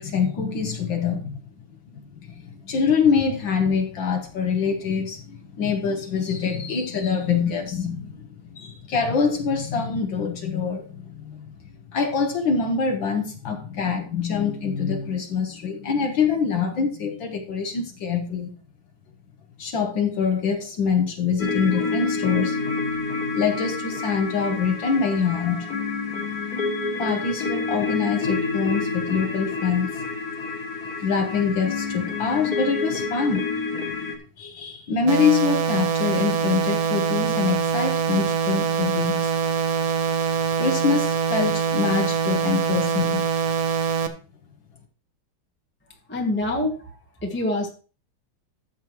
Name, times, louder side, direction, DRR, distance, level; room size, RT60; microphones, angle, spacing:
voice 1, 0.0-1.4 1.9-11.5 11.9-18.5 19.6-22.6 23.3-25.7 27.0-30.1 30.9-33.4 34.4-39.3 40.6-43.2, left 6 dB, 65° left, 3 dB, 1.7 m, -25 dB
sound 1, 21.4-34.2, left 4 dB, 50° left, 2.1 m, -28 dB
sound 2, 35.1-44.1, right 7 dB, 55° right, 1.2 m, -24 dB
voice 2, 46.1-46.9 47.2-47.7, left 1 dB, 5° left, 1 dB, 1.1 m, -25 dB
13.0 x 7.4 x 3.1 m, 0.37 s
omnidirectional pair, 2.3 m